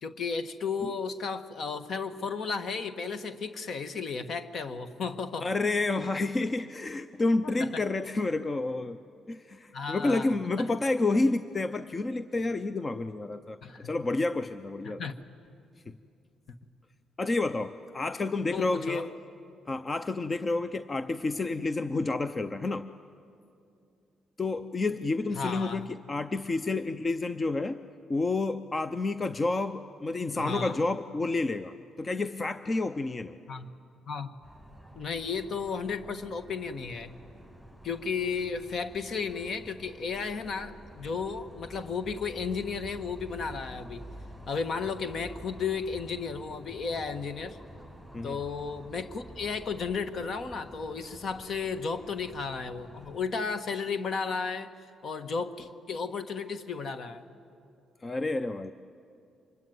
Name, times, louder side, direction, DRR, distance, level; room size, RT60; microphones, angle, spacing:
voice 1, 0.0-5.5 7.4-7.8 9.7-10.7 13.6-13.9 14.8-15.1 18.5-19.1 25.3-25.9 30.3-30.8 33.5-33.7 34.1-34.3 34.9-37.1 37.8-44.0 44.5-47.6 48.2-54.7 55.0-57.3, left 5 dB, 55° left, 10 dB, 1.4 m, -34 dB
voice 2, 5.4-9.0 9.3-13.6 13.8-15.0 15.9-16.0 17.2-19.1 19.7-22.9 24.4-27.8 28.1-33.4 48.1-48.4 58.0-58.7, left 3 dB, 30° left, 12 dB, 0.6 m, -29 dB
sound 1, 34.4-53.2, right 1 dB, 10° left, 6.6 m, -49 dB
25.0 x 21.5 x 9.4 m, 2.5 s
cardioid pair, 90°, 0 cm